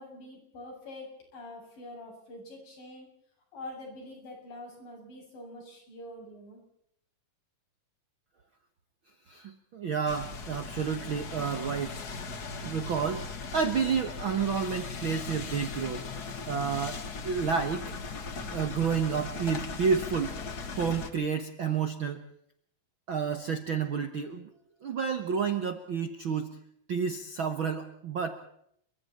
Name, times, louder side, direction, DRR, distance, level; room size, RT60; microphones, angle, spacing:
voice 1, 0.0-3.1 3.5-6.6, left 1 dB, 70° left, 1 dB, 9.2 m, -45 dB
voice 2, 9.3-12.0 12.6-16.1 16.5-17.9 18.5-20.4 20.7-22.2 23.1-24.5 24.8-26.6 26.9-28.5, right 6 dB, 55° right, 7 dB, 1.4 m, -30 dB
sound 1, 10.1-21.1, left 4 dB, 45° left, 1.3 m, -38 dB
29.5 x 24.0 x 4.4 m, 0.71 s
omnidirectional pair, 4.0 m